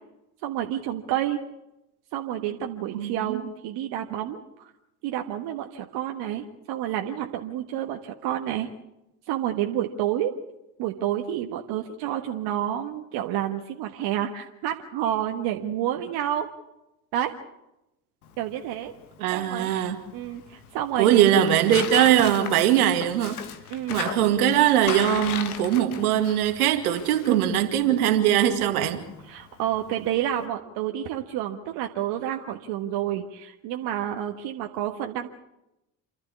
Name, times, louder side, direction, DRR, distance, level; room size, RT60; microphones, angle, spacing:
voice 1, 0.4-1.4 2.1-4.7 5.0-8.7 9.3-10.4 10.8-16.5 17.1-17.3 18.4-18.9 19.3-19.7 20.1-21.5 23.7-24.0 29.3-35.3, right 11 dB, 70° right, 1.5 m, -29 dB
voice 2, 2.9-3.5 19.2-20.0 21.0-23.4 23.9-29.0, right 11 dB, 85° right, 2.1 m, -21 dB
Tearing, 18.2-30.5, left 8 dB, 85° left, 1.5 m, -38 dB
28.5 x 12.5 x 8.5 m
hypercardioid pair, 55°, 43 cm